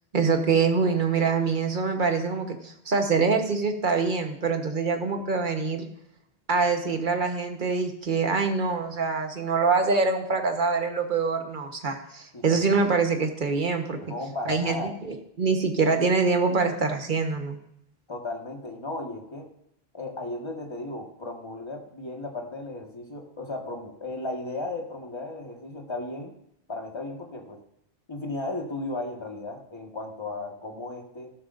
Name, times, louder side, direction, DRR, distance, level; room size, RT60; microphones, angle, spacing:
voice 1, 0.1-5.9 6.5-14.0 14.5-14.8 15.0-17.6, right 4 dB, 50° right, 5 dB, 1.4 m, -25 dB
voice 2, 12.3-12.8 14.0-15.0 18.1-19.5 19.9-26.3 26.7-27.6 28.1-31.3, left 2 dB, 25° left, 1 dB, 1.7 m, -35 dB
14.5 x 12.5 x 2.6 m, 0.75 s
omnidirectional pair, 1.1 m